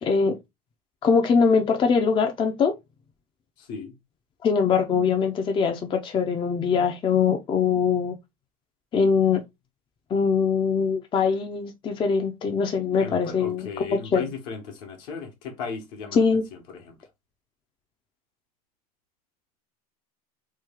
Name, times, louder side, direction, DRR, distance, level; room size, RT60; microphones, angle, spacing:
voice 1, 0.0-0.4 1.0-2.7 4.4-8.2 8.9-9.4 10.1-14.2 16.1-16.4, left 5 dB, 25° left, 0.5 m, -22 dB
voice 2, 3.6-3.9 13.0-17.0, left 5 dB, 65° left, 1.2 m, -36 dB
3.1 x 2.3 x 3.4 m
supercardioid pair, 110°, 20 cm